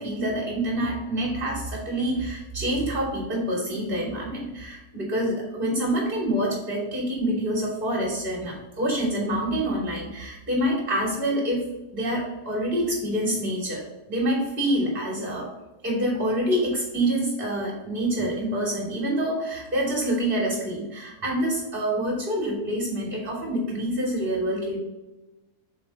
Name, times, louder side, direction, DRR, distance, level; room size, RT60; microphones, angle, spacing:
voice 1, 0.0-15.5 15.8-24.8, right 1 dB, 30° right, -4 dB, 2.8 m, -26 dB
6.4 x 4.5 x 4.2 m, 1.1 s
omnidirectional pair, 1.8 m